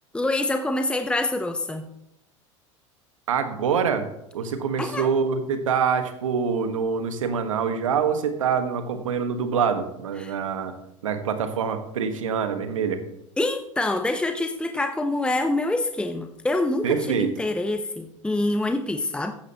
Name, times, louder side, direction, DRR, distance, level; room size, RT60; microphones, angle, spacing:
voice 1, 0.1-1.9 4.8-5.1 10.2-10.3 13.4-19.3, left 2 dB, 5° left, 7 dB, 0.9 m, -26 dB
voice 2, 3.3-4.1 4.3-10.7 11.0-13.0 16.8-17.3, right 6 dB, 80° right, 8 dB, 1.4 m, -25 dB
14.5 x 10.0 x 2.9 m, 0.83 s
hypercardioid pair, 80°, 16 cm